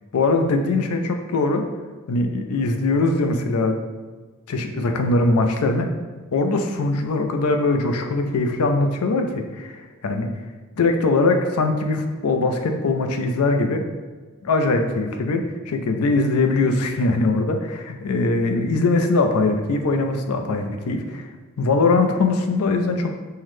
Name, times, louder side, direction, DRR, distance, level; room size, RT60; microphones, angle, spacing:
voice 1, 0.1-1.7 2.1-3.8 4.5-5.9 6.3-10.3 10.8-13.8 14.4-21.3 21.6-23.2, left 3 dB, 85° left, 5 dB, 0.5 m, -21 dB
5.6 x 2.1 x 3.1 m, 1.4 s
head